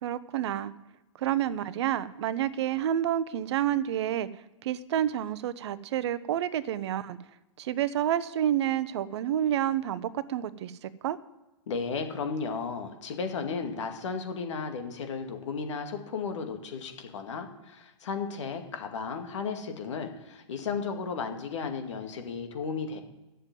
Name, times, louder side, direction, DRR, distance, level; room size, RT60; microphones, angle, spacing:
voice 1, 0.0-0.7 1.2-4.3 4.6-7.2 7.6-11.2, right 11 dB, 55° right, 15 dB, 0.8 m, -29 dB
voice 2, 11.7-23.0, left 5 dB, 65° left, 5 dB, 2.2 m, -34 dB
10.5 x 7.4 x 9.2 m, 1.0 s
hypercardioid pair, 120°, 17 cm